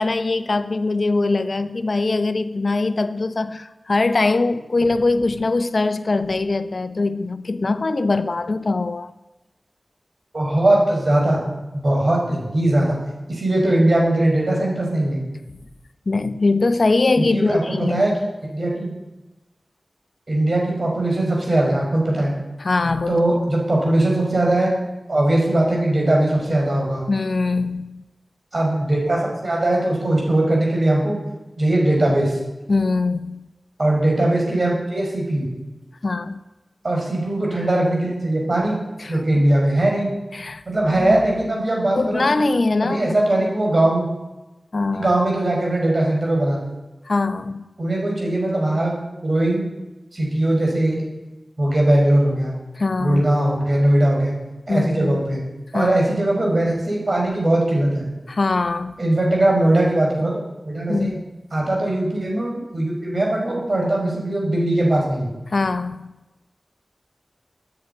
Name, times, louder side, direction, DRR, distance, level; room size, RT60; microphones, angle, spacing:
voice 1, 0.0-9.1 16.1-18.0 22.6-23.2 27.1-28.0 32.7-33.5 36.0-36.4 39.0-39.4 40.3-40.6 41.0-41.2 41.9-43.2 44.7-45.1 47.0-47.7 52.8-53.2 54.7-55.2 55.7-56.0 58.3-58.9 60.9-61.2 65.5-66.1, left 3 dB, 70° left, 12 dB, 0.8 m, -22 dB
voice 2, 10.3-11.4 11.7-13.0 13.3-15.3 17.2-18.1 18.5-18.9 20.3-22.3 23.1-24.7 25.1-27.1 28.5-31.2 31.6-32.4 33.8-35.5 36.8-38.8 39.1-40.1 40.7-42.4 42.8-44.1 44.9-46.7 47.8-48.9 49.2-49.7 50.1-51.0 51.6-52.6 53.0-54.3 54.7-55.4 55.7-58.1 59.0-61.2 61.5-65.3, right 1 dB, 60° right, -2 dB, 5.8 m, -20 dB
11.5 x 9.1 x 9.4 m, 1.1 s
cardioid pair, 45°, 0 cm